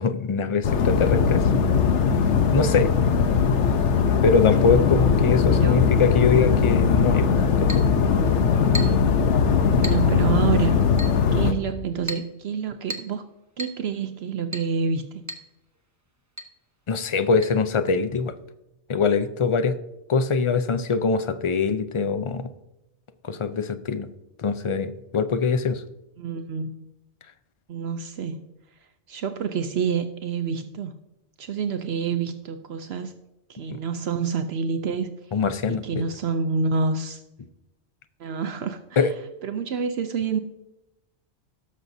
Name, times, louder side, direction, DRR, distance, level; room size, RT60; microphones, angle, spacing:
voice 1, 0.0-1.4 2.5-2.9 4.2-7.3 7.6-7.8 11.4-11.6 16.9-18.3 18.9-19.8 20.1-22.5 23.2-24.1 24.4-25.8 33.7-33.8 35.3-36.0 39.0-39.1, left 5 dB, 45° left, 10 dB, 0.4 m, -23 dB
sound 1, 0.6-11.5, left 6 dB, 85° left, 1.1 m, -20 dB
voice 2, 5.5-5.9 9.7-10.8 11.3-13.2 13.6-15.2 26.2-26.7 27.7-28.4 29.1-30.9 31.4-33.1 33.5-35.1 35.8-37.2 38.2-39.1 39.4-40.4, right 5 dB, 70° right, 8 dB, 0.8 m, -27 dB
Chink clink, 7.7-7.9 8.7-9.1 9.8-10.1 11.0-11.2 12.1-12.3 12.9-13.2 13.6-13.8 14.5-14.7 15.3-15.5 15.7-15.8 16.4-16.5 17.4-17.5, right 1 dB, 20° right, 0.7 m, -34 dB
18.0 x 6.3 x 2.7 m, 0.93 s
omnidirectional pair, 1.2 m